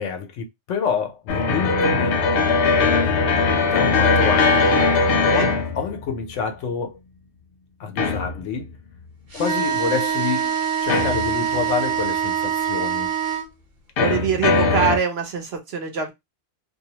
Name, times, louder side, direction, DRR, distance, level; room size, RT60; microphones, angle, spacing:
voice 1, 0.0-2.2 3.7-4.8 5.3-7.0 7.8-8.7 9.3-10.5 10.8-13.1 14.1-14.2, left 6 dB, 75° left, 1.0 m, -28 dB
sound 1, 1.3-6.3 8.0-8.7 10.9-11.7 14.0-15.0, left 4 dB, 60° left, 0.6 m, -20 dB
sound 2, 9.3-13.4, right 8 dB, 35° right, 0.9 m, -24 dB
voice 2, 14.0-16.1, right 7 dB, 60° right, 0.9 m, -24 dB
2.6 x 2.0 x 2.8 m
omnidirectional pair, 1.3 m